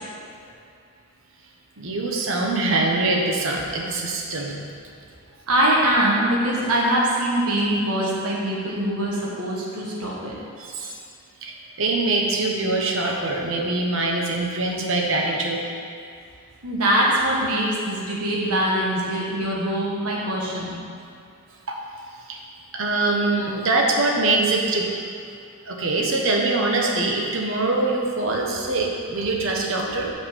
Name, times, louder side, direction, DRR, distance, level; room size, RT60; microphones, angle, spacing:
voice 1, 1.8-4.6 10.6-11.0 11.4-15.6 21.7-21.8 22.3-22.4 22.7-24.9 25.7-30.1, right 2 dB, 60° right, 0 dB, 1.1 m, -23 dB
voice 2, 5.5-10.4 16.6-20.8, right 1 dB, 80° right, -4 dB, 1.6 m, -23 dB
5.6 x 5.6 x 6.8 m, 2.4 s
head